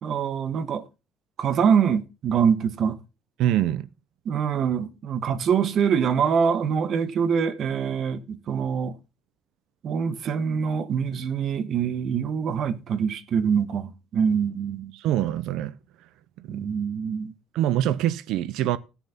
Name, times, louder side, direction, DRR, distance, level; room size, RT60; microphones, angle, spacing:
voice 1, 0.0-0.8 1.4-3.0 4.3-9.0 9.8-14.9 16.5-17.3, right 7 dB, 45° right, 1.3 m, -24 dB
voice 2, 3.4-3.9 14.9-15.7 16.4-16.7 17.5-18.8, right 12 dB, 70° right, 0.8 m, -24 dB
16.5 x 7.1 x 5.8 m
cardioid pair, 165°, 0 cm